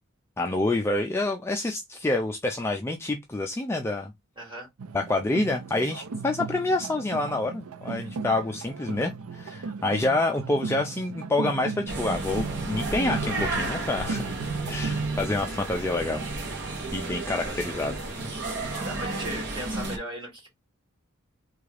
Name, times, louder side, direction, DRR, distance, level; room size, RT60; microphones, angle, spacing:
voice 1, 0.4-4.1 4.9-14.2 14.6-16.3 16.9-17.9, left 2 dB, 10° left, 0.3 m, -27 dB
voice 2, 4.4-4.7 17.4-17.7 18.7-20.5, right 1 dB, 25° right, 2.2 m, -38 dB
sound 1, 4.8-15.1, right 4 dB, 85° right, 0.5 m, -36 dB
sound 2, 11.9-20.0, right 2 dB, 55° right, 1.1 m, -32 dB
3.5 x 2.4 x 3.2 m
head